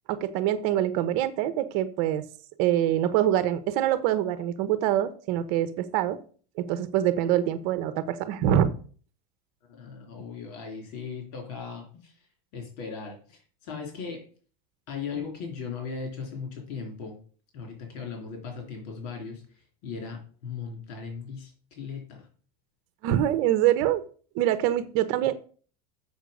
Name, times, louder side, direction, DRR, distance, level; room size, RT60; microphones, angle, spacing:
voice 1, 0.1-2.3 2.6-6.2 6.6-8.7 23.0-24.0 24.3-25.3, right 11 dB, 65° right, 13 dB, 1.0 m, -25 dB
voice 2, 9.7-12.2 12.5-14.2 14.9-17.2 17.5-22.3, left 5 dB, 75° left, 1 dB, 3.4 m, -38 dB
7.2 x 6.4 x 5.2 m, 0.42 s
supercardioid pair, 135°, 20 cm